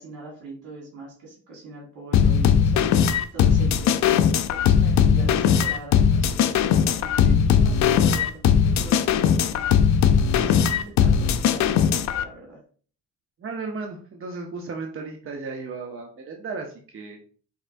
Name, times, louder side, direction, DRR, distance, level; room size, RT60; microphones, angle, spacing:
voice 1, 0.0-4.0 4.5-9.8 10.4-12.6, right 2 dB, 90° right, -2 dB, 1.5 m, -41 dB
sound 1, 2.1-12.2, left 7 dB, 65° left, 0.5 m, -19 dB
voice 2, 13.4-17.2, right 4 dB, 45° right, 2 dB, 0.7 m, -35 dB
5.0 x 3.2 x 2.5 m, 0.43 s
cardioid pair, 90°, 30 cm